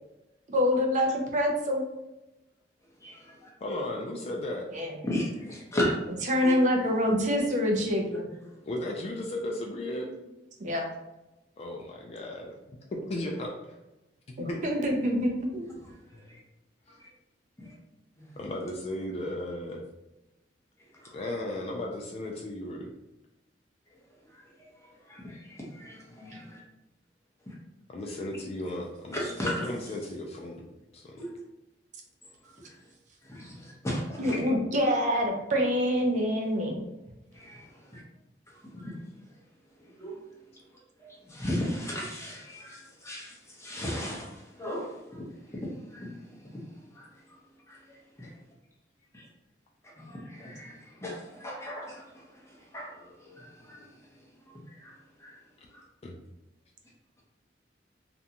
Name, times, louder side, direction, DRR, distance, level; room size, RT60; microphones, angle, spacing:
voice 1, 0.5-1.8 4.7-4.9 6.2-8.3 10.6-10.9 14.4-15.7 34.2-36.8, equal, 45° right, 1 dB, 0.4 m, -26 dB
voice 2, 3.6-4.7 8.6-10.1 11.6-12.6 12.9-13.8 14.4-14.6 16.1-16.2 18.4-19.8 21.1-22.9 27.9-30.7 30.9-31.3 56.0-56.2, left 1 dB, 35° left, 0 dB, 0.3 m, -35 dB
voice 3, 5.0-5.9 6.4-6.5 16.3-16.4 17.6-17.7 18.2-18.3 25.1-26.6 29.1-29.5 31.2-31.3 33.3-34.4 37.4-37.6 37.9-38.0 38.7-38.9 40.0-40.2 41.0-43.3 43.6-44.3 44.6-44.9 45.5-46.2 47.0-47.1 47.7-47.8 48.2-48.3 49.1-49.2 50.0-52.0 52.7-53.0 53.4-53.8 54.8-54.9 55.2-55.4, left 1 dB, 15° left, -4 dB, 0.7 m, -35 dB
2.4 x 2.2 x 2.8 m, 0.98 s
head